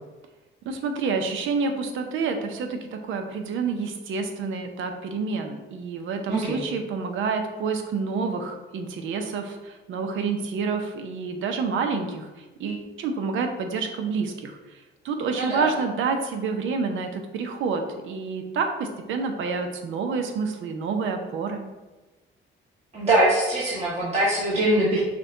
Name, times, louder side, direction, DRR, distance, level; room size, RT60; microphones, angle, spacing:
voice 1, 0.6-12.3 12.6-21.7, right 4 dB, 80° right, 5 dB, 0.7 m, -28 dB
voice 2, 22.9-25.0, right 1 dB, 35° right, -7 dB, 1.2 m, -22 dB
5.9 x 2.3 x 3.8 m, 1.2 s
cardioid pair, 90°, 20 cm